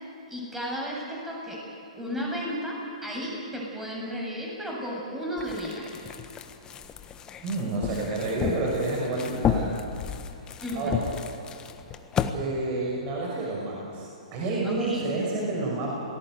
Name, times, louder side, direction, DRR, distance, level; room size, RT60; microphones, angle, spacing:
voice 1, 0.3-1.6 1.9-5.9 10.6-11.0 14.6-15.0, equal, 5° right, -3 dB, 7.9 m, -33 dB
sound 1, 5.4-12.3, left 8 dB, 20° left, 1.4 m, -32 dB
voice 2, 7.4-9.9 10.7-11.0 12.3-15.9, right 2 dB, 35° right, -3 dB, 6.1 m, -29 dB
28.0 x 19.5 x 8.2 m, 2.8 s
hypercardioid pair, 120°, 4 cm